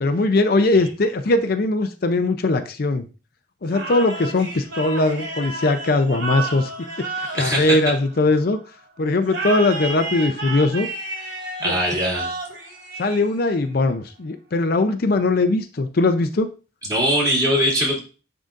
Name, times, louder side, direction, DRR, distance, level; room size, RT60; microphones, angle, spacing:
voice 1, 0.0-3.1 3.6-6.7 7.0-8.6 9.0-10.9 11.6-11.7 13.0-16.5, left 2 dB, 55° left, 8 dB, 0.5 m, -20 dB
sound 1, 3.7-8.5 9.2-13.7, right 2 dB, 80° right, 2.5 m, -32 dB
voice 2, 7.3-7.8 11.6-12.3 16.9-18.0, equal, 20° right, -3 dB, 2.3 m, -21 dB
10.0 x 3.9 x 2.5 m, 0.34 s
head